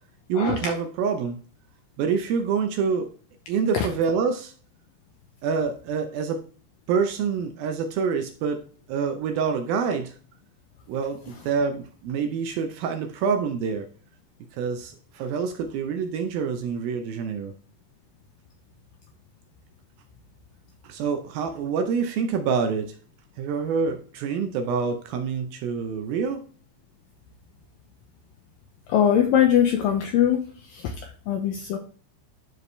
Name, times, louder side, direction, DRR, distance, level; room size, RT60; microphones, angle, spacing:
voice 1, 0.3-1.4 2.0-3.1 3.5-4.5 5.4-6.4 6.9-8.6 8.9-10.2 10.9-13.9 14.5-17.5 20.8-23.0 23.4-26.4, right 6 dB, 80° right, 6 dB, 2.2 m, -26 dB
voice 2, 28.9-30.4 30.7-30.9 31.3-31.8, left 9 dB, 85° left, 4 dB, 2.0 m, -21 dB
12.0 x 4.6 x 3.3 m, 0.42 s
omnidirectional pair, 5.0 m